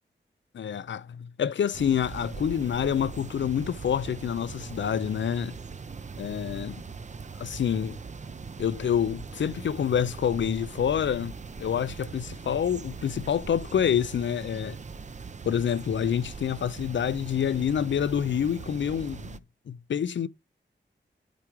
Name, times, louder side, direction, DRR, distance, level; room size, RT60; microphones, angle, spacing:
voice 1, 0.5-5.6 6.2-6.8 7.4-8.0 8.6-11.3 11.6-14.8 15.4-19.4 19.7-20.3, left 8 dB, 80° left, 0.5 m, -27 dB
sound 1, 1.7-19.4, right 4 dB, 40° right, 0.6 m, -41 dB
12.0 x 4.7 x 3.0 m
wide cardioid pair, 105°, 19 cm